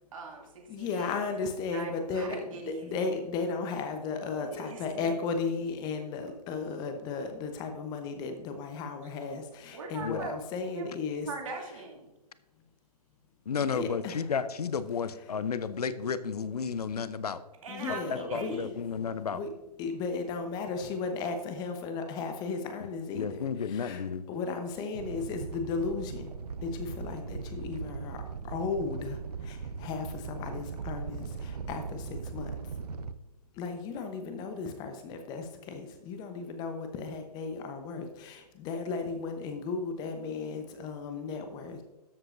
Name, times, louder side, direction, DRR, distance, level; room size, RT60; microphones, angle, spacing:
voice 1, 0.1-1.2 1.6-2.9 4.4-5.1 9.7-10.3 10.7-10.9 11.2-12.1 17.6-18.7, right 4 dB, 55° right, 1 dB, 2.6 m, -41 dB
voice 2, 0.7-2.4 2.7-11.3 13.6-14.3 15.1-15.4 17.7-18.7 19.3-19.5 19.8-26.3 26.6-32.6 33.5-41.8, left 4 dB, 20° left, 6 dB, 0.9 m, -35 dB
voice 3, 13.5-17.4 18.3-19.4 23.1-24.2, left 6 dB, 70° left, 14 dB, 0.7 m, -32 dB
Animal, 24.9-33.1, right 5 dB, 75° right, 0.7 m, -39 dB
12.5 x 7.8 x 2.6 m, 1.1 s
figure-of-eight pair, 135°, 20 cm